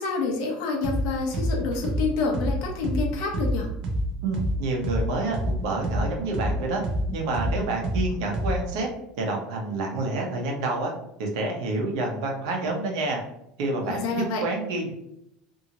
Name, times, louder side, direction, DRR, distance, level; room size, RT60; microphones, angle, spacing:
voice 1, 0.0-3.7 13.9-14.4, left 4 dB, 60° left, 0 dB, 0.7 m, -28 dB
sound 1, 0.8-1.0 1.3-5.0 5.3-8.8, equal, 40° right, 0.5 m, -27 dB
voice 2, 4.2-6.8 7.1-8.9 9.2-10.9 11.2-13.2 13.6-14.9, right 2 dB, 75° right, 0 dB, 0.9 m, -28 dB
2.7 x 2.6 x 2.8 m, 0.79 s
cardioid pair, 180°, 3 cm